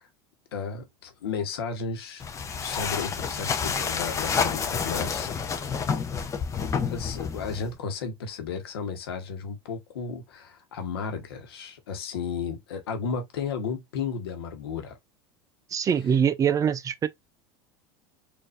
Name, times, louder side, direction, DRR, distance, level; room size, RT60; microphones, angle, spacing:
voice 1, 0.5-2.2 2.6-5.3 6.9-15.0, left 5 dB, 90° left, 1.2 m, -33 dB
sound 1, 2.2-7.8, left 6 dB, 25° left, 0.7 m, -29 dB
voice 2, 15.7-17.1, right 7 dB, 25° right, 0.5 m, -23 dB
4.4 x 2.6 x 2.5 m
supercardioid pair, 110°, 12 cm